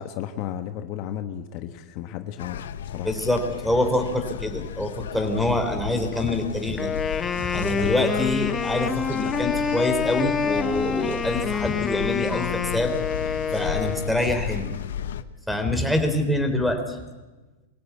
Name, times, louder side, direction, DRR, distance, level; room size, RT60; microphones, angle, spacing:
voice 1, 0.0-3.1, left 10 dB, 50° left, 8 dB, 1.2 m, -34 dB
sound 1, 2.4-15.2, left 10 dB, 80° left, 1.0 m, -34 dB
voice 2, 3.0-6.9 7.4-12.9 13.3-14.7 15.5-17.0, left 1 dB, ahead, 4 dB, 3.4 m, -25 dB
Wind instrument woodwind instrument, 6.8-14.4, left 6 dB, 20° left, 1.2 m, -27 dB
23.5 x 15.5 x 8.4 m, 1.2 s
hypercardioid pair, 115°, 0 cm